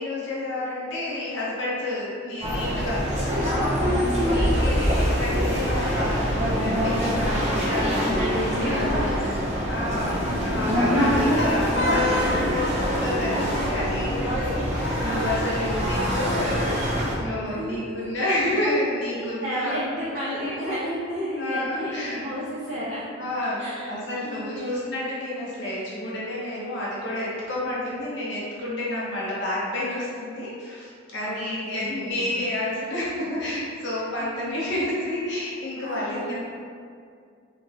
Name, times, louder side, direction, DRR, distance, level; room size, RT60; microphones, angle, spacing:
voice 1, 0.0-3.9 4.2-9.4 9.7-10.2 10.5-16.6 17.0-19.8 20.5-20.7 21.4-22.2 23.2-36.4, left 1 dB, 60° left, -7 dB, 0.9 m, -30 dB
sound 1, 2.4-17.1, equal, 35° right, 0.7 m, -24 dB
voice 2, 3.8-4.2 7.8-9.4 9.8-10.4 17.4-18.1 19.1-23.0 23.6-23.9 24.2-24.8 31.2-32.2 34.2-34.5 35.7-36.4, equal, 75° right, -11 dB, 0.7 m, -32 dB
3.3 x 2.9 x 2.6 m, 2.3 s
head